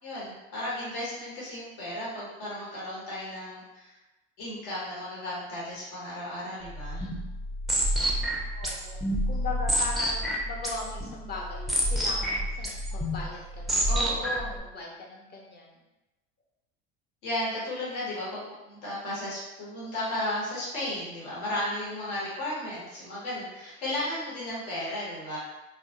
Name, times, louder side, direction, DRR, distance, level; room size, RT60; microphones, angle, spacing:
voice 1, 0.0-3.9 4.4-7.1 13.9-14.5 17.2-18.4 18.7-25.4, left 1 dB, 70° left, -7 dB, 1.1 m, -34 dB
sound 1, 6.7-14.6, equal, ahead, 0.4 m, -29 dB
voice 2, 8.5-9.0 9.3-15.8, left 3 dB, 35° left, -2 dB, 0.7 m, -39 dB
2.2 x 2.1 x 2.8 m, 1.0 s
hypercardioid pair, 85°, 30 cm